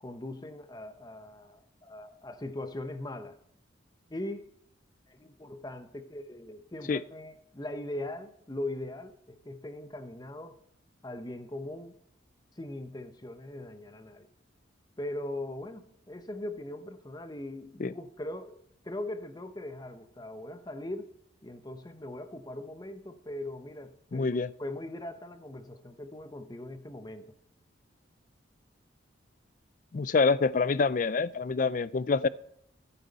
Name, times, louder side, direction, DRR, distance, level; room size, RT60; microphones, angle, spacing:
voice 1, 0.0-3.4 4.1-4.5 5.1-10.6 11.0-11.9 12.6-14.3 15.0-21.1 21.4-27.3, left 1 dB, 20° left, 0.8 m, -40 dB
voice 2, 24.1-24.5 29.9-32.3, left 4 dB, 40° left, 0.4 m, -26 dB
15.0 x 10.0 x 4.1 m
head